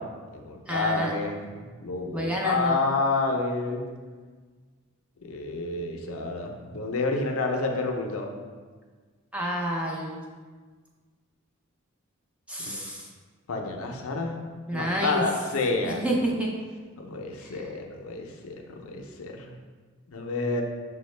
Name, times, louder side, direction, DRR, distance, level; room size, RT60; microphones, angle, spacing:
voice 1, 0.0-3.9 5.2-8.3 12.6-12.8 13.5-14.4 14.7-16.0 17.0-19.6 20.1-20.6, left 3 dB, 85° left, 2 dB, 0.5 m, -29 dB
voice 2, 0.7-1.1 2.1-2.8 9.3-10.2 12.5-13.1 14.7-15.2 15.8-16.5 17.4-17.6, right 1 dB, 5° right, -2 dB, 0.5 m, -29 dB
6.1 x 2.1 x 3.1 m, 1.5 s
head